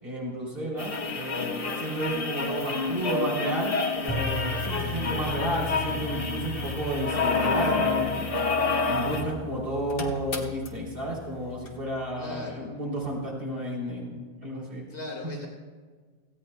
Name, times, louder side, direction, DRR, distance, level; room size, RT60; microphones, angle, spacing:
voice 1, 0.0-8.3 8.8-14.9, right 1 dB, 55° right, -3 dB, 3.4 m, -32 dB
sound 1, 0.8-9.3 9.6-9.7 9.9-10.7 11.7-11.8, left 3 dB, 60° left, 1.4 m, -29 dB
sound 2, 4.1-12.2, left 3 dB, 5° right, 0.8 m, -38 dB
voice 2, 12.2-12.7 14.9-15.5, left 2 dB, 85° left, 0 dB, 2.3 m, -38 dB
17.5 x 15.0 x 2.2 m, 1.5 s
omnidirectional pair, 1.1 m